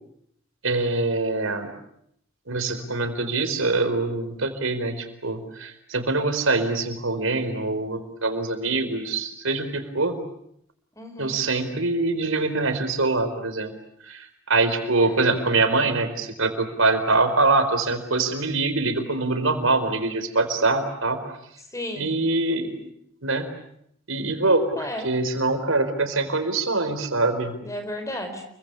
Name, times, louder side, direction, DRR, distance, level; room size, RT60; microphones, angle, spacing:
voice 1, 0.6-1.7 2.5-10.2 11.2-13.7 14.1-21.2 22.0-22.8 23.2-23.5 24.1-27.6, right 3 dB, 75° right, 8 dB, 4.5 m, -24 dB
voice 2, 11.0-11.4 15.0-15.2 21.6-22.1 24.8-25.1 27.6-28.5, left 1 dB, 15° left, 7 dB, 4.5 m, -34 dB
30.0 x 23.5 x 8.5 m, 0.72 s
head